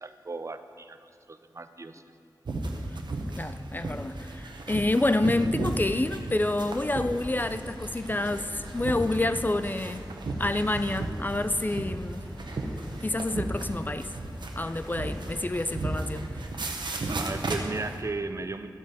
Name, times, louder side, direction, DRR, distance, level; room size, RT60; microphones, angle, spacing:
voice 1, 0.0-2.0 17.2-18.7, right 3 dB, 40° right, 9 dB, 0.6 m, -36 dB
sound 1, 2.5-18.0, right 2 dB, 80° right, 1.0 m, -35 dB
voice 2, 3.4-10.0 10.4-12.2 13.0-14.1 14.6-16.2, left 2 dB, 25° left, 11 dB, 0.4 m, -28 dB
sound 2, 6.9-16.5, equal, 5° left, 2.4 m, -45 dB
12.5 x 8.0 x 5.0 m, 2.5 s
wide cardioid pair, 60°, 8 cm